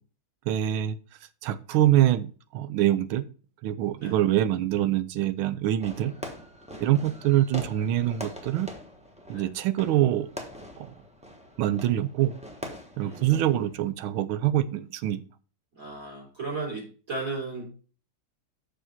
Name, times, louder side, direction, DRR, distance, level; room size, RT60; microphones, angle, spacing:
voice 1, 0.5-1.0 1.4-3.3 3.6-6.1 6.8-8.7 9.3-10.3 11.6-12.3 13.0-15.2, right 12 dB, 85° right, 12 dB, 1.5 m, -24 dB
Fireworks, 5.8-13.9, left 1 dB, 5° right, 0.8 m, -43 dB
voice 2, 5.9-6.4 6.7-7.1 9.3-9.5 12.9-13.5 15.7-17.7, right 3 dB, 40° right, -3 dB, 3.8 m, -37 dB
6.4 x 5.1 x 5.5 m, 0.38 s
omnidirectional pair, 2.2 m